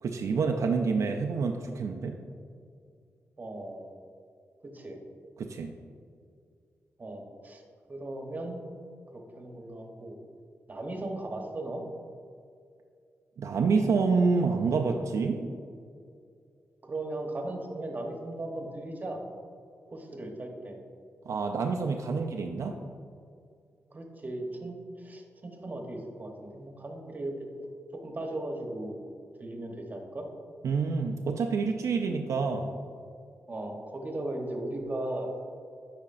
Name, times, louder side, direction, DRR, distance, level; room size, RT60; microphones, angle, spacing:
voice 1, 0.0-2.2 5.4-5.7 13.4-15.5 21.3-22.8 30.6-32.7, right 4 dB, 75° right, 3 dB, 0.4 m, -27 dB
voice 2, 3.4-3.9 4.6-5.0 7.0-7.6 7.9-8.7 9.1-10.2 10.7-11.8 16.8-19.2 19.9-20.8 23.9-27.5 27.9-29.0 29.4-30.3 33.5-35.4, right 1 dB, 35° right, 2 dB, 0.9 m, -37 dB
8.5 x 4.9 x 2.5 m, 2.3 s
wide cardioid pair, 105°, 5 cm